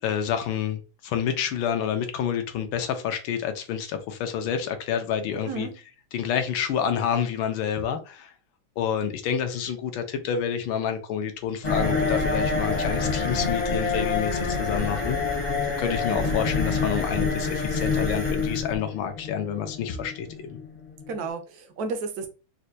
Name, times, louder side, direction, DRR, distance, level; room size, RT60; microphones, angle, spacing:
voice 1, 0.0-5.7 6.1-8.3 8.8-15.2 15.8-20.6, left 8 dB, 75° left, 1.3 m, -28 dB
voice 2, 5.5-5.8 16.1-16.3 21.1-22.3, right 4 dB, 75° right, 0.9 m, -32 dB
sound 1, 11.6-21.2, left 4 dB, 40° left, 0.7 m, -27 dB
4.3 x 2.2 x 2.6 m
omnidirectional pair, 2.3 m